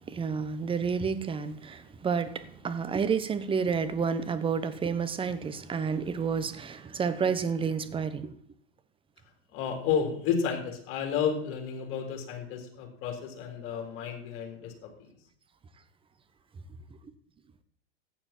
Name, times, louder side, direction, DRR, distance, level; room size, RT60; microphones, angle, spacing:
voice 1, 0.1-8.3, right 6 dB, 15° right, 1.2 m, -30 dB
voice 2, 9.5-15.1, left 7 dB, 45° left, 3.8 m, -32 dB
14.5 x 9.9 x 4.5 m
hypercardioid pair, 105°, 31 cm